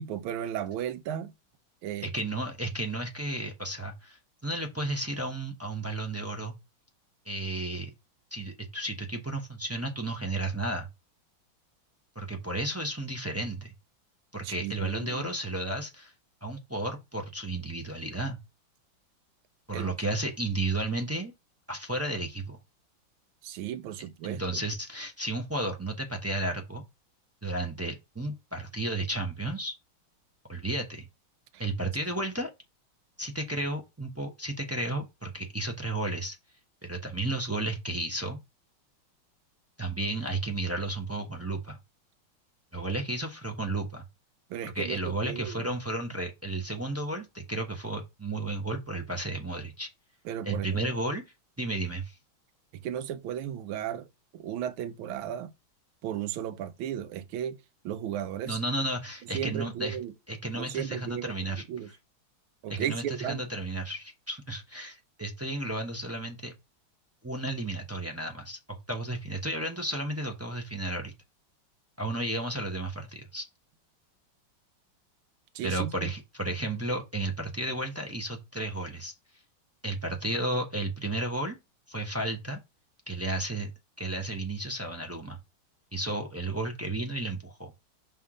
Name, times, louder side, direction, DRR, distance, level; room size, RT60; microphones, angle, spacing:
voice 1, 0.0-1.3 1.8-2.1 14.4-15.3 19.7-19.9 23.4-24.6 31.5-31.6 44.5-45.7 50.2-50.9 52.7-54.1 54.3-55.5 56.0-58.6 59.3-60.1 60.5-61.9 62.6-63.4 75.5-76.1, right 10 dB, 90° right, 1.5 m, -35 dB
voice 2, 2.0-6.5 7.2-7.9 8.3-10.9 12.1-13.7 14.3-16.1 16.4-18.4 19.7-21.3 21.7-22.6 24.2-26.8 27.4-29.8 30.5-31.1 31.6-32.5 33.2-36.4 36.8-38.4 39.8-41.8 42.7-44.0 44.6-49.9 50.4-51.2 51.6-52.2 58.5-60.0 60.3-61.6 62.7-66.5 67.2-71.1 72.0-73.5 75.6-79.1 79.8-81.6 81.9-82.6 83.1-83.7 84.0-85.4 85.9-87.7, right 2 dB, 20° right, 0.4 m, -33 dB
5.8 x 3.5 x 4.8 m
omnidirectional pair, 2.2 m